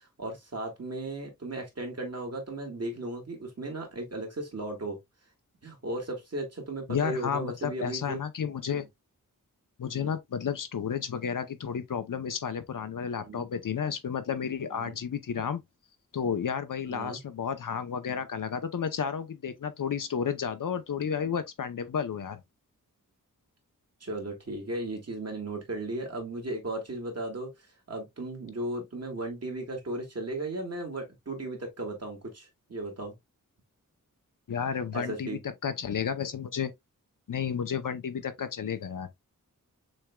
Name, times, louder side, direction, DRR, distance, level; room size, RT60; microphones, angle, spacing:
voice 1, 0.0-5.0 5.6-8.2 8.7-8.8 9.9-10.1 13.2-13.4 14.7-14.9 16.9-17.2 24.0-33.1 34.9-35.4, right 2 dB, 45° right, 2.0 m, -36 dB
voice 2, 6.9-8.9 9.8-15.6 16.1-22.4 34.5-36.7 37.3-39.1, left 7 dB, 70° left, 0.7 m, -32 dB
6.3 x 3.5 x 2.2 m
wide cardioid pair, 110°, 33 cm